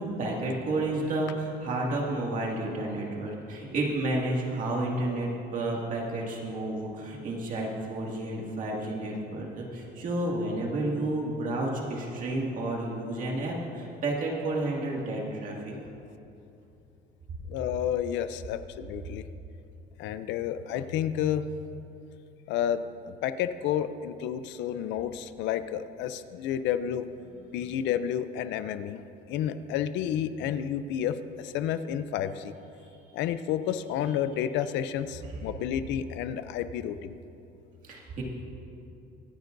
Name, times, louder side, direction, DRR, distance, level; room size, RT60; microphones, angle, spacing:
voice 1, 0.0-15.7 27.4-27.5 37.8-38.2, right 2 dB, 45° right, -2 dB, 2.2 m, -31 dB
voice 2, 17.5-19.2 20.0-21.4 22.5-27.0 27.5-29.0 29.3-32.5 33.1-37.1, left 10 dB, 70° left, 12 dB, 0.5 m, -30 dB
24.0 x 9.8 x 2.6 m, 2.8 s
cardioid pair, 150°, 19 cm